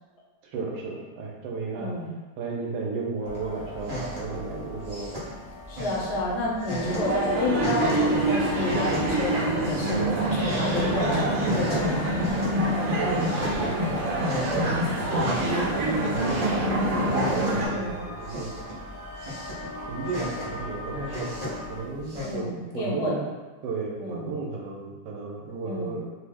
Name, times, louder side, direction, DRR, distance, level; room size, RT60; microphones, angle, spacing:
voice 1, 0.5-1.9 2.4-5.1 9.9-10.3 13.0-18.5 19.9-21.3 21.7-23.2 23.6-26.0, right 3 dB, 80° right, -1 dB, 1.2 m, -34 dB
voice 2, 1.8-2.1 5.7-12.1 16.5-16.9 17.6-18.0 22.2-23.2 24.0-24.3 25.6-26.0, left 1 dB, 75° left, -3 dB, 1.1 m, -30 dB
sound 1, 3.2-21.8, left 1 dB, 30° left, 0.7 m, -42 dB
sound 2, 3.2-22.3, equal, 40° right, 0.5 m, -37 dB
sound 3, 6.8-17.7, right 1 dB, 65° right, 0.9 m, -26 dB
2.9 x 2.0 x 3.4 m, 1.2 s
omnidirectional pair, 1.9 m